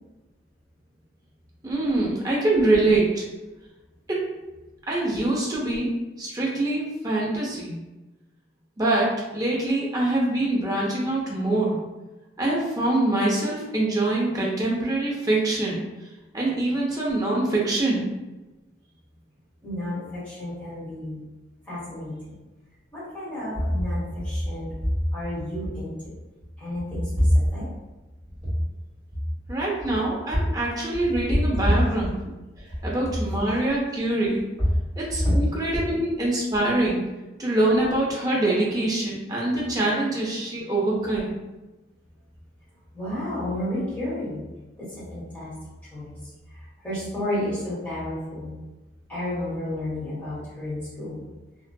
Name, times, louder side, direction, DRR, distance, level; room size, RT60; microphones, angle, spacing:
voice 1, 1.6-3.2 4.1-4.3 4.9-5.9 6.2-7.8 8.8-11.8 12.4-15.8 16.3-18.1 29.5-32.3 32.8-34.4 35.0-37.0 37.4-41.3, right 2 dB, 20° right, -4 dB, 0.5 m, -24 dB
voice 2, 19.6-21.2 21.6-22.1 22.9-26.2 26.6-27.7 35.2-35.3 42.9-44.4 44.8-45.5 45.9-46.2 46.5-48.5 49.1-51.2, left 1 dB, 10° left, -11 dB, 1.2 m, -29 dB
2.6 x 2.3 x 2.2 m, 1.1 s
head